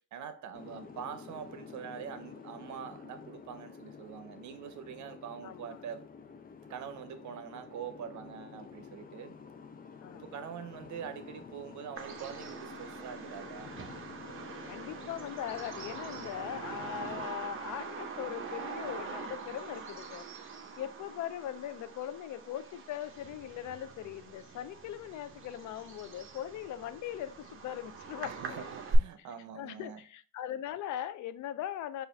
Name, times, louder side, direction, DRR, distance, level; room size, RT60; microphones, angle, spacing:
voice 1, 0.1-6.0 6.7-9.4 10.1-13.7 28.2-30.0, right 8 dB, 70° right, 0.7 m, -44 dB
Boat Water vehicle, 0.5-17.3, left 5 dB, 30° left, 0.6 m, -49 dB
voice 2, 5.4-5.8 10.0-10.2 14.6-20.5 20.8-28.7 29.2-29.3 29.6-32.1, left 11 dB, 75° left, 0.5 m, -40 dB
Bird vocalization bird call bird song, 12.0-29.0, right 4 dB, 45° right, 0.8 m, -42 dB
4.8 x 2.5 x 3.1 m
cardioid pair, 90°, 30 cm